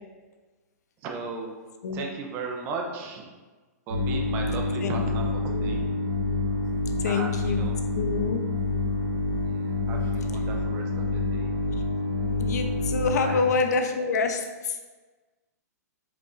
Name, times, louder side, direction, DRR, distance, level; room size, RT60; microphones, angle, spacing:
voice 1, 1.0-1.5 1.9-3.2 3.9-5.8 7.1-7.8 9.4-11.5 13.2-13.7, right 4 dB, 20° right, 2 dB, 0.4 m, -36 dB
sound 1, 3.9-13.4, left 2 dB, 65° right, 1.4 m, -27 dB
voice 2, 5.4-5.7 7.0-7.6 7.9-8.4 12.4-14.8, left 4 dB, 70° left, 6 dB, 0.5 m, -27 dB
4.8 x 3.1 x 2.4 m, 1.3 s
hypercardioid pair, 160°, 9 cm